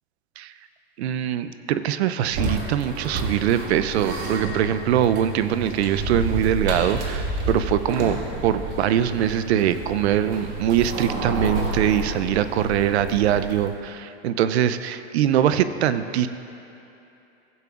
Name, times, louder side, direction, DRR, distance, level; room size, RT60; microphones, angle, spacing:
voice 1, 1.0-16.3, right 10 dB, 80° right, 12 dB, 0.6 m, -22 dB
sound 1, 2.3-13.7, right 2 dB, 55° right, 1.8 m, -30 dB
16.5 x 8.4 x 2.4 m, 2.8 s
hypercardioid pair, 115°, 32 cm